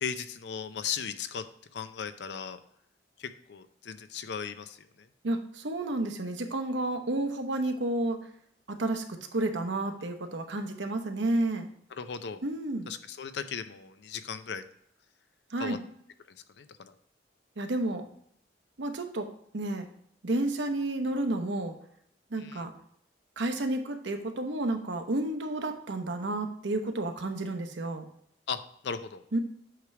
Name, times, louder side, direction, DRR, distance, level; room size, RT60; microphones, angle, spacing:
voice 1, 0.0-1.4 1.7-2.6 3.2-5.1 11.9-12.4 12.9-14.6 15.6-15.8 16.6-16.9 22.4-22.6 28.5-29.2, left 6 dB, 70° left, 11 dB, 0.5 m, -37 dB
voice 2, 5.2-8.2 8.7-11.7 12.4-12.9 15.5-15.8 17.6-18.0 18.8-19.3 19.5-19.9 20.2-21.8 22.3-22.7 23.4-28.0 29.3-29.4, right 2 dB, 85° right, 5 dB, 0.9 m, -31 dB
8.0 x 3.3 x 4.6 m, 0.70 s
head